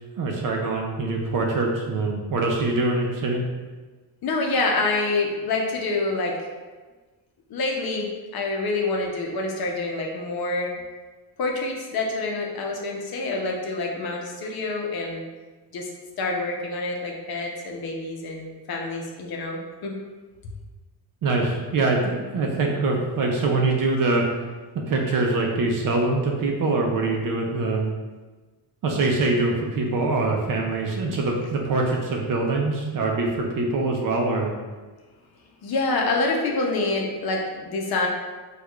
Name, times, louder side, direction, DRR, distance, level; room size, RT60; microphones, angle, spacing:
voice 1, 0.2-3.4 21.2-24.2 24.7-27.9 28.8-34.5, right 3 dB, 50° right, 0 dB, 0.5 m, -24 dB
voice 2, 4.2-6.4 7.5-10.7 11.4-15.2 15.7-15.9 16.2-20.0 35.6-38.1, left 3 dB, 60° left, 0 dB, 0.7 m, -27 dB
4.5 x 2.4 x 2.3 m, 1.3 s
cardioid pair, 130°, 42 cm